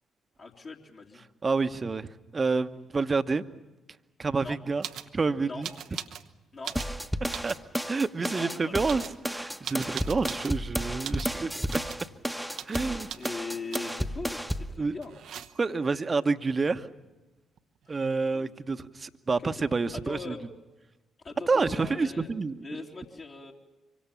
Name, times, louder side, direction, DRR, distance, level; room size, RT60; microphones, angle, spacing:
voice 1, 0.4-1.2 4.4-4.6 5.4-5.6 6.5-6.8 8.3-9.0 12.7-15.1 18.3-18.5 19.4-19.6 19.9-20.4 21.2-22.3 22.6-23.5, left 4 dB, 50° left, -2 dB, 2.9 m, -40 dB
voice 2, 1.4-3.4 4.2-4.9 5.1-5.7 7.4-7.5 7.9-11.8 12.7-13.1 14.8-15.0 15.6-16.9 17.9-20.3 21.5-22.8, right 4 dB, 35° right, 10 dB, 1.2 m, -28 dB
sound 1, 4.8-5.1 5.6-6.3 6.6-7.6 8.2-8.5 8.8-10.6 11.0-11.3 11.7-12.1 12.5-12.8 13.1-13.3 13.7-14.1 15.0-15.8 17.6-17.7 17.8-18.4, right 9 dB, 60° right, 0.9 m, -41 dB
sound 2, 6.8-14.7, equal, ahead, 1.3 m, -32 dB
25.5 x 24.0 x 7.1 m, 1.1 s
figure-of-eight pair, 40°, 0 cm